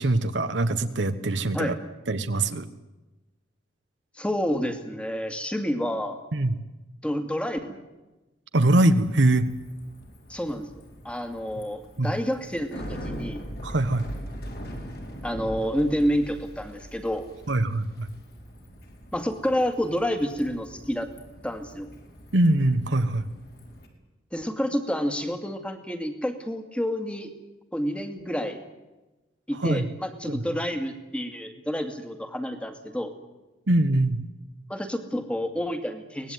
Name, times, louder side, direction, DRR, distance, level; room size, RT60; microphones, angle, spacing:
voice 1, 0.0-1.7 2.1-2.7 6.3-6.6 8.5-9.5 12.0-12.1 13.6-14.1 17.5-18.1 22.3-23.3 29.6-29.8 30.3-30.4 33.7-34.3, right 1 dB, 75° right, 9 dB, 1.1 m, -23 dB
voice 2, 4.2-6.2 7.0-7.8 10.3-13.4 15.2-17.3 19.1-21.1 21.4-21.9 24.3-27.3 27.7-28.6 29.5-33.1 34.7-36.3, equal, 5° left, 7 dB, 2.2 m, -29 dB
Bicycle, 9.0-23.9, equal, 55° left, 4.5 m, -42 dB
24.0 x 19.0 x 9.3 m, 1.1 s
head